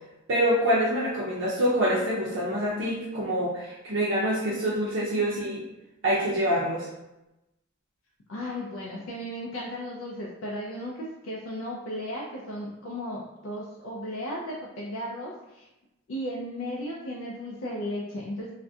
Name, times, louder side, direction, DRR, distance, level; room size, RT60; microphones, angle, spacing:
voice 1, 0.3-5.6 6.0-6.9, equal, 70° right, -7 dB, 0.5 m, -26 dB
voice 2, 8.3-15.7 16.1-18.5, equal, 85° left, -4 dB, 0.4 m, -35 dB
2.3 x 2.1 x 2.6 m, 0.97 s
head